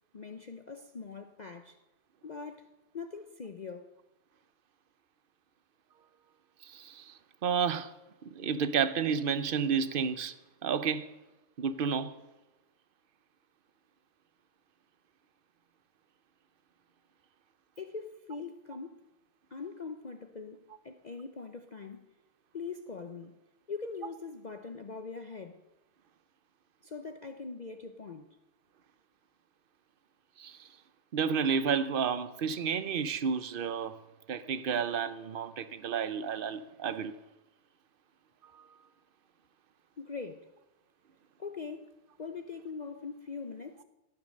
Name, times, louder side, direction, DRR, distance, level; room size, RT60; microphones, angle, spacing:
voice 1, 0.1-1.8 2.2-3.9 17.8-19.0 19.5-22.1 22.5-23.4 23.7-25.6 26.8-28.4 40.0-40.5 41.4-43.8, left 4 dB, 65° left, 0.4 m, -42 dB
voice 2, 6.6-7.1 7.4-7.9 8.2-10.4 10.6-11.1 11.6-12.2 30.4-30.7 31.1-34.0 34.3-37.1 38.5-38.6, right 6 dB, 50° right, 0.6 m, -31 dB
17.0 x 10.5 x 6.5 m
omnidirectional pair, 1.8 m